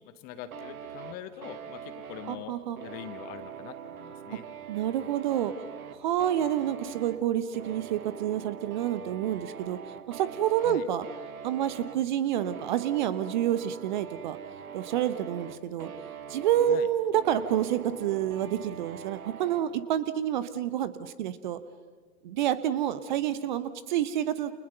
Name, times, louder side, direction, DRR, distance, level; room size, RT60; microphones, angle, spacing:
voice 1, 0.2-2.5 2.8-4.4 10.6-10.9 16.7-16.9, left 11 dB, 20° left, 12 dB, 1.0 m, -43 dB
sound 1, 0.5-19.7, right 8 dB, 55° right, 2.0 m, -43 dB
voice 2, 2.3-2.8 4.7-5.5 6.0-9.8 10.1-11.1 11.4-14.4 14.7-15.9 16.3-21.6 22.2-24.5, right 11 dB, 30° right, 14 dB, 1.0 m, -28 dB
29.5 x 29.5 x 6.7 m, 1.5 s
figure-of-eight pair, 125°, 50 cm